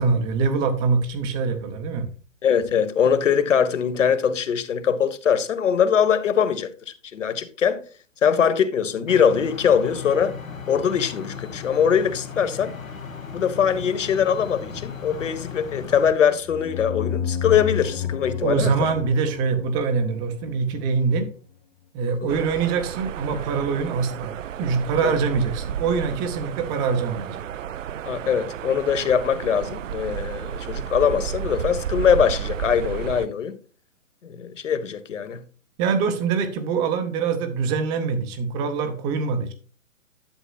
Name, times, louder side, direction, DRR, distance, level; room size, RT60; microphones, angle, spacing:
voice 1, 0.0-2.1 18.4-21.3 21.9-27.4 35.8-39.5, right 5 dB, 10° right, 0.7 m, -24 dB
voice 2, 2.4-7.8 8.2-10.4 10.7-12.7 13.3-18.7 22.0-22.3 25.0-25.2 28.1-33.6 34.2-35.4, left 7 dB, 65° left, 1.5 m, -22 dB
sound 1, 9.1-16.1, left 6 dB, 85° left, 2.3 m, -36 dB
sound 2, 16.4-21.0, left 9 dB, 35° left, 1.2 m, -31 dB
sound 3, 22.3-33.3, right 9 dB, 75° right, 0.5 m, -32 dB
11.5 x 7.1 x 2.4 m
hypercardioid pair, 145°, 39 cm